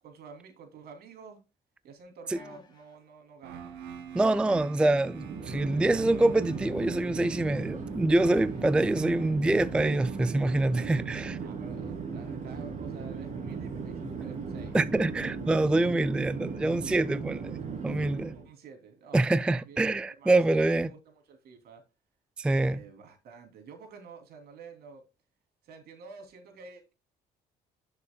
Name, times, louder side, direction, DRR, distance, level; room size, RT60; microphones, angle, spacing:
voice 1, 0.0-1.4 1.8-3.8 11.4-14.8 18.3-19.8 20.2-21.8 22.5-25.0 25.6-26.9, right 5 dB, 65° right, 2.9 m, -50 dB
sound 1, 2.3-3.0 4.2-4.9 6.3-7.2 8.2-8.9 10.1-10.3, left 5 dB, 25° left, 3.0 m, -53 dB
sound 2, 3.4-11.2, right 8 dB, 85° right, 1.9 m, -48 dB
voice 2, 4.1-11.4 14.7-17.6 17.8-18.3 19.1-20.9 22.4-22.8, right 2 dB, 5° right, 0.3 m, -25 dB
Chatter / Fixed-wing aircraft airplane, 5.0-18.5, right 5 dB, 45° right, 3.0 m, -37 dB
10.5 x 6.8 x 2.3 m
cardioid pair, 110°, 17 cm